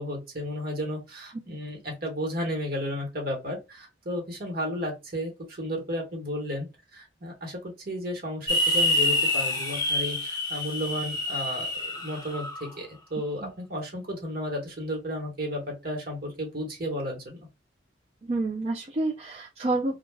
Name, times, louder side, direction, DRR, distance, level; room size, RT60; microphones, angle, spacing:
voice 1, 0.0-17.4, equal, 55° right, 1.2 m, -33 dB
sound 1, 8.5-12.7, left 1 dB, 20° left, 0.8 m, -27 dB
voice 2, 18.2-20.0, right 2 dB, 35° right, 0.4 m, -29 dB
3.3 x 2.3 x 2.2 m
head